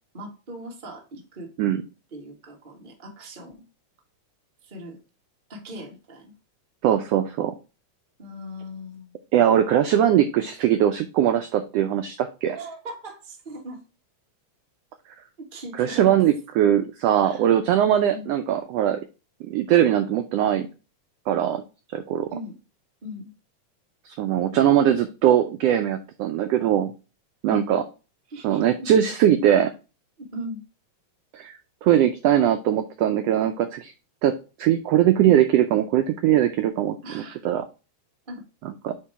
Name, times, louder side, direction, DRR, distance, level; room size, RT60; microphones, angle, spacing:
voice 1, 0.1-1.5 2.1-3.6 4.6-5.0 5.5-6.3 8.2-9.1 12.5-13.8 15.4-16.1 17.2-17.4 18.1-18.3 22.3-22.6 23.0-23.3 27.5-27.8 28.3-28.7 30.3-30.6 37.0-37.4 38.3-38.4, equal, 30° right, 1 dB, 1.0 m, -39 dB
voice 2, 6.8-7.5 9.3-12.6 15.8-19.0 19.5-20.7 21.3-21.6 21.9-22.3 24.0-26.9 27.4-27.8 28.4-29.7 31.3-31.5 31.8-33.9 34.2-37.6 38.6-38.9, right 10 dB, 80° right, 8 dB, 1.4 m, -21 dB
8.5 x 3.0 x 4.6 m, 0.31 s
omnidirectional pair, 3.4 m